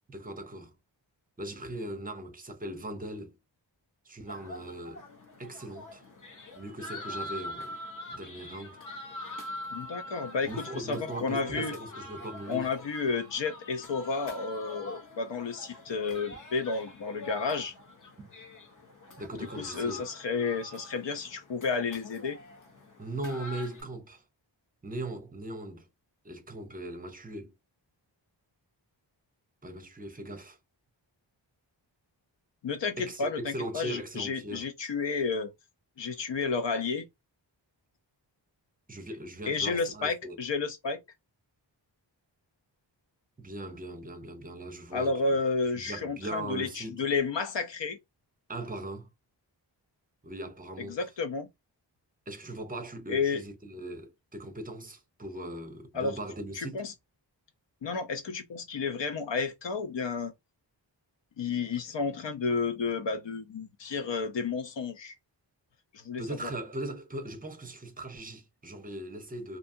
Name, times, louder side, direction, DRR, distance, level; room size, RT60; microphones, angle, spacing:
voice 1, 0.1-0.7 1.4-3.3 4.0-5.0 5.4-6.0 6.6-7.8 8.1-8.8 10.5-12.7 18.2-18.3 19.2-20.0 23.0-24.2 24.8-25.9 26.2-27.5 29.6-30.6 33.0-34.7 38.9-40.4 43.4-45.2 45.8-47.0 48.5-49.1 50.2-51.0 52.3-56.8 66.2-69.6, right 1 dB, 20° right, 0.6 m, -39 dB
sound 1, 4.3-23.8, left 1 dB, 45° left, 0.9 m, -44 dB
voice 2, 9.7-11.7 12.5-17.7 19.6-22.4 32.6-35.5 36.0-37.1 39.5-41.0 44.9-48.0 50.8-51.5 53.1-53.4 55.9-56.2 56.6-56.9 57.8-60.3 61.4-65.1 65.9-66.5, left 4 dB, 70° left, 0.7 m, -31 dB
2.7 x 2.2 x 2.7 m
wide cardioid pair, 85°, 45 cm